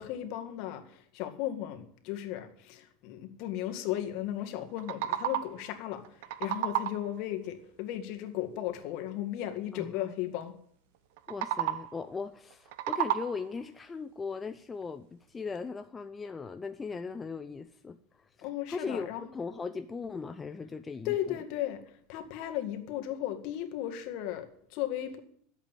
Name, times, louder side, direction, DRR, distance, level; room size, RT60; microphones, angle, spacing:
voice 1, 0.0-6.0 6.4-10.6 18.4-19.2 21.0-21.8 22.1-25.2, left 12 dB, 50° left, 5 dB, 1.9 m, -35 dB
sound 1, 4.6-5.7 6.0-7.2 11.2-12.1 12.5-13.6, right 13 dB, 70° right, 0.7 m, -33 dB
voice 2, 9.7-10.1 11.3-21.4, left 5 dB, 15° left, 8 dB, 0.5 m, -39 dB
12.0 x 8.3 x 9.0 m, 0.62 s
supercardioid pair, 155°, 0 cm